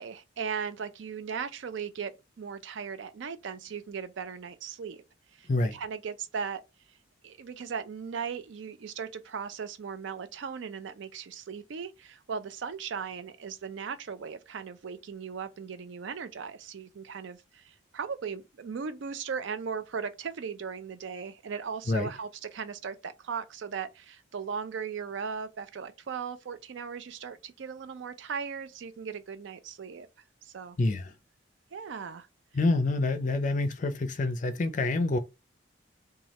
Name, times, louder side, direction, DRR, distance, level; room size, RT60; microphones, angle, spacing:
voice 1, 0.0-2.1 2.4-5.0 5.4-6.6 7.2-30.1 30.4-30.8 31.7-32.3, right 6 dB, 70° right, 0.4 m, -37 dB
voice 2, 30.8-31.1 32.5-35.2, left 2 dB, 40° left, 0.4 m, -27 dB
3.1 x 2.3 x 2.8 m
head